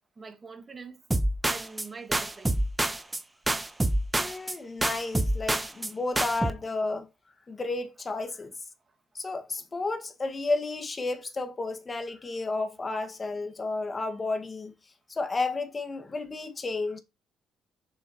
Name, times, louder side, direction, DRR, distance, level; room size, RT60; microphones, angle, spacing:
voice 1, 0.2-1.0 1.4-2.6, right 4 dB, 35° right, 1.9 m, -44 dB
sound 1, 1.1-3.2 3.5-4.6 4.8-5.9 6.2-6.5, right 1 dB, 15° right, 1.0 m, -27 dB
voice 2, 4.1-7.1 7.5-8.5 9.2-14.7 15.1-17.0, left 3 dB, 30° left, 1.7 m, -32 dB
7.1 x 6.3 x 3.0 m
cardioid pair, 80°, 0 cm